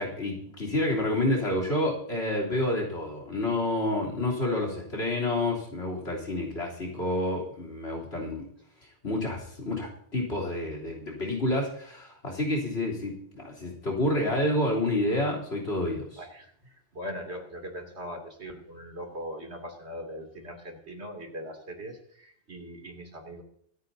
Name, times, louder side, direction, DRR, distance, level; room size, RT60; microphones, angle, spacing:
voice 1, 0.0-8.4 9.0-16.2, left 1 dB, 60° left, 0 dB, 3.8 m, -29 dB
voice 2, 16.2-23.4, equal, 65° right, 2 dB, 3.1 m, -40 dB
25.5 x 9.4 x 2.8 m, 0.65 s
omnidirectional pair, 1.2 m